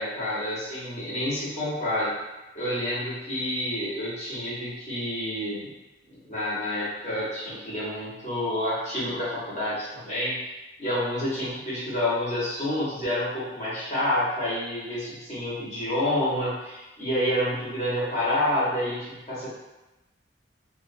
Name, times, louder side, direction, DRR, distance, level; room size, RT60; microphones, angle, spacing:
voice 1, 0.0-2.1 2.5-5.7 6.2-10.4 10.8-19.5, left 1 dB, 40° left, -9 dB, 1.0 m, -28 dB
2.5 x 2.3 x 2.6 m, 1.0 s
head